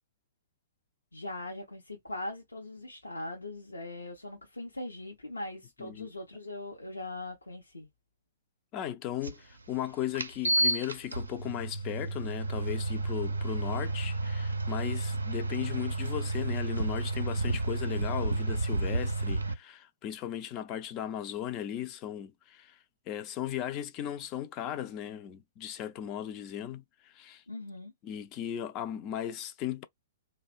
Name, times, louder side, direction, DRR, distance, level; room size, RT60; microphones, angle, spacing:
voice 1, 1.1-7.9 27.5-27.9, left 2 dB, 80° left, 0.7 m, -40 dB
voice 2, 8.7-22.8 23.1-27.4 28.0-29.8, left 11 dB, 30° left, 0.4 m, -37 dB
sound 1, 9.2-9.3 10.2-19.5, right 2 dB, 80° right, 0.4 m, -31 dB
2.6 x 2.1 x 2.4 m
figure-of-eight pair, 115°, 0 cm